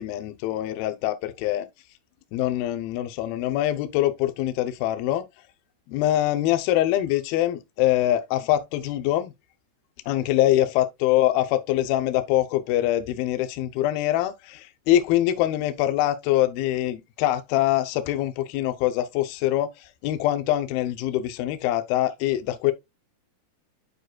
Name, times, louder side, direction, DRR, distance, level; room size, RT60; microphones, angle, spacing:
voice 1, 0.0-1.7 2.3-5.2 5.9-9.3 10.1-19.7 20.0-22.7, left 13 dB, 90° left, 2.1 m, -24 dB
11.5 x 4.8 x 2.3 m
omnidirectional pair, 5.2 m